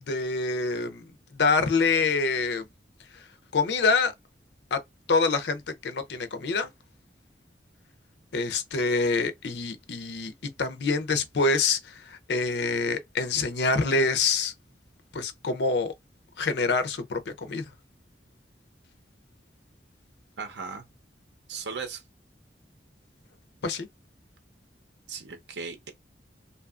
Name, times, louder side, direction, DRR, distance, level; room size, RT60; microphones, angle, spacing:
voice 1, 0.1-1.0 1.4-2.6 3.5-4.1 4.7-4.8 5.1-6.7 8.3-11.8 12.1-14.5 15.1-15.9 16.4-17.6 23.6-23.9, left 4 dB, 70° left, 0.5 m, -26 dB
voice 2, 20.4-20.8 21.5-22.0 25.1-25.9, right 5 dB, 80° right, 0.7 m, -37 dB
2.7 x 2.4 x 2.4 m
head